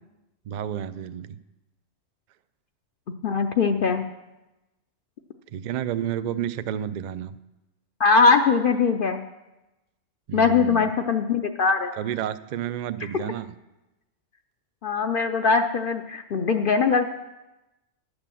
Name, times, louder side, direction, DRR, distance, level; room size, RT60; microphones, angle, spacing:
voice 1, 0.5-1.4 5.5-7.3 10.3-10.9 12.0-13.5, right 10 dB, 70° right, 13 dB, 0.4 m, -30 dB
voice 2, 3.2-4.1 8.0-9.2 10.3-11.9 13.0-13.1 14.8-17.1, left 5 dB, 55° left, 6 dB, 0.7 m, -21 dB
11.0 x 6.2 x 7.5 m, 0.99 s
omnidirectional pair, 1.3 m